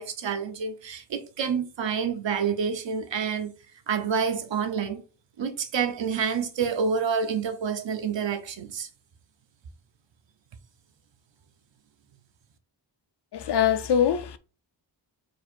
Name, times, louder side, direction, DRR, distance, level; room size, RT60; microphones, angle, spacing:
voice 1, 0.0-3.5 3.9-5.0 5.4-8.9, right 6 dB, 80° right, 0.8 m, -28 dB
voice 2, 13.3-14.4, left 9 dB, 65° left, 0.6 m, -23 dB
4.6 x 2.4 x 4.4 m
wide cardioid pair, 125°, 44 cm